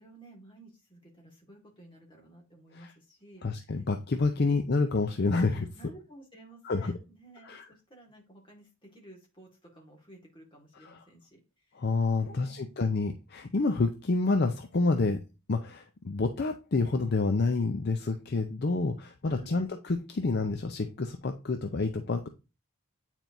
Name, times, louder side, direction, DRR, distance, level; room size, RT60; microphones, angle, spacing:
voice 1, 0.0-3.4 4.3-4.6 5.8-11.4 11.7-11.9 12.1-12.8 19.3-19.6, right 2 dB, 20° left, 0 dB, 1.7 m, -54 dB
voice 2, 3.4-5.7 6.6-6.9 7.4-7.7 10.8-11.0 11.7-15.2 15.5-22.3, left 3 dB, 45° left, 6 dB, 0.5 m, -28 dB
9.0 x 4.4 x 2.6 m, 0.29 s
head